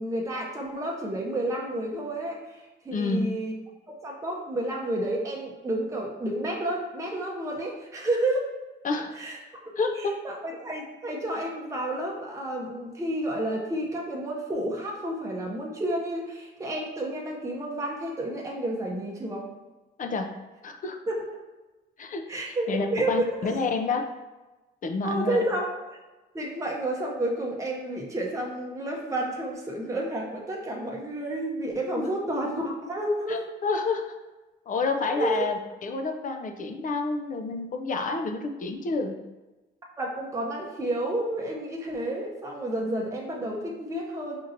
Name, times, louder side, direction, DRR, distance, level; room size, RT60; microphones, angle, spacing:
voice 1, 0.0-3.5 3.9-8.5 9.1-9.4 9.8-9.9 10.2-19.5 21.1-21.3 22.3-23.5 25.0-26.0 26.3-33.4 35.2-35.5 40.0-44.4, right 1 dB, 15° right, -1 dB, 0.7 m, -30 dB
voice 2, 2.9-3.3 8.8-9.2 9.8-9.9 20.0-20.3 20.6-21.0 22.0-24.1 24.8-25.4 32.0-32.1 33.3-34.1 34.7-39.2, left 4 dB, 40° left, 5 dB, 0.5 m, -29 dB
5.1 x 2.8 x 2.6 m, 1.1 s
cardioid pair, 90°, 20 cm